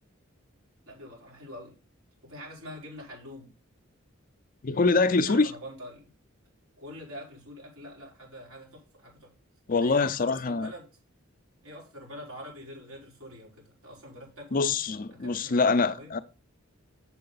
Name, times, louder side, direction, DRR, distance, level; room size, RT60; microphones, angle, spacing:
voice 1, 0.9-1.7 2.2-3.5 4.7-6.1 6.8-9.3 9.7-10.9 11.6-14.6 15.1-16.1, equal, 80° right, 5.0 m, -45 dB
voice 2, 4.6-5.5 9.7-10.7 14.5-16.2, left 4 dB, 40° left, 0.5 m, -24 dB
7.5 x 7.5 x 4.0 m
head